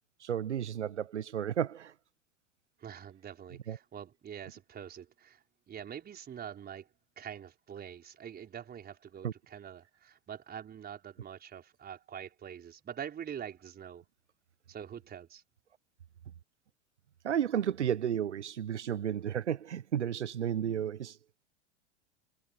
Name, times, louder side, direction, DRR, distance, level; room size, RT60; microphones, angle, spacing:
voice 1, 0.2-1.9 3.7-3.8 9.2-9.3 17.2-21.2, right 9 dB, 85° right, 0.8 m, -32 dB
voice 2, 2.8-6.9 7.2-14.0 14.7-15.4, right 9 dB, 30° right, 4.8 m, -45 dB
hypercardioid pair, 90°, 34 cm